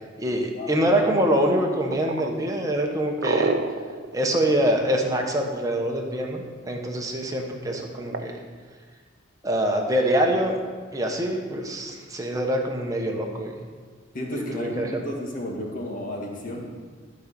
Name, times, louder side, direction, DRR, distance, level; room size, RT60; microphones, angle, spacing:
voice 1, 0.2-3.5 4.1-8.3 9.4-10.6 10.9-13.5 14.3-15.0, right 1 dB, 20° right, 1 dB, 1.2 m, -25 dB
sound 1, 1.9-5.6 7.7-8.3, right 3 dB, 55° right, 0.7 m, -28 dB
voice 2, 14.1-16.6, left 1 dB, 45° left, -1 dB, 1.9 m, -32 dB
13.0 x 5.2 x 6.8 m, 1.5 s
head